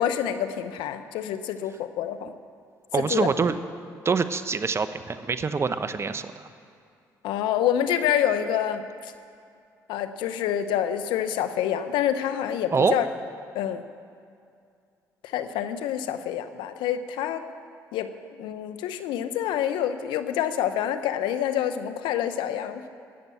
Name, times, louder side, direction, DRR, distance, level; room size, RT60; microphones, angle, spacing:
voice 1, 0.0-2.3 3.0-3.3 7.2-9.1 9.9-13.1 13.5-13.8 15.2-17.4 17.9-18.1 18.4-22.8, left 10 dB, 80° left, 10 dB, 0.8 m, -27 dB
voice 2, 2.9-3.6 4.0-6.5 12.7-13.0, right 5 dB, 35° right, 11 dB, 0.8 m, -25 dB
18.0 x 6.9 x 8.3 m, 2.4 s
supercardioid pair, 60°, 8 cm